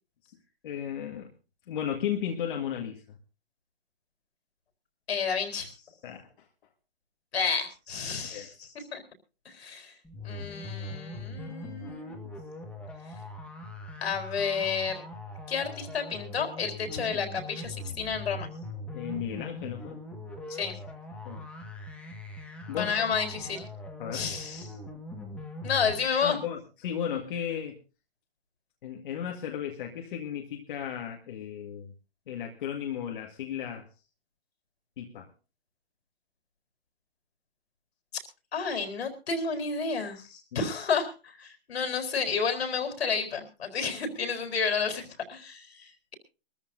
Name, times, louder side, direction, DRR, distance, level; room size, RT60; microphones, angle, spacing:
voice 1, 0.6-1.3 1.7-3.2 6.0-6.3 8.2-8.5 18.9-20.0 21.3-21.5 22.7-23.1 24.0-24.3 26.2-27.8 28.8-31.9 32.3-33.9 35.0-35.3 40.5-40.7, left 9 dB, 55° left, 2 dB, 1.9 m, -35 dB
voice 2, 5.1-5.7 7.3-9.0 9.5-9.9 10.2-12.3 14.0-15.0 15.5-18.5 20.5-20.7 22.7-23.6 24.1-24.7 25.6-26.4 38.5-46.1, left 5 dB, 80° left, 6 dB, 4.2 m, -31 dB
sound 1, 10.0-26.1, left 1 dB, 5° left, 1.7 m, -41 dB
24.5 x 14.0 x 2.7 m, 0.32 s
hypercardioid pair, 155°, 31 cm